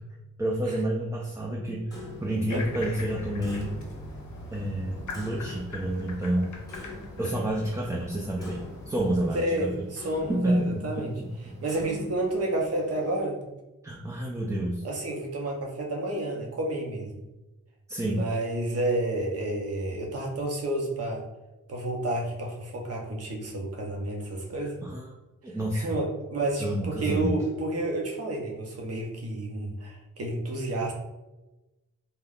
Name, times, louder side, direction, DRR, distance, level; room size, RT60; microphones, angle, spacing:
voice 1, 0.4-1.9 2.2-3.8 4.5-6.5 7.2-9.7 10.3-11.5 13.8-14.8 17.9-18.3 24.6-25.1 25.4-25.8 26.6-27.3, right 1 dB, 10° right, -3 dB, 0.3 m, -29 dB
Clock, 1.9-13.2, left 2 dB, 10° left, 0.7 m, -46 dB
sound 1, 2.5-9.3, left 2 dB, 75° left, 0.6 m, -41 dB
voice 2, 9.3-11.1 11.6-13.3 14.8-17.2 18.1-21.2 21.7-24.8 25.7-30.9, right 1 dB, 55° right, 1 dB, 0.6 m, -30 dB
2.3 x 2.1 x 3.5 m, 1.0 s
wide cardioid pair, 95°, 30 cm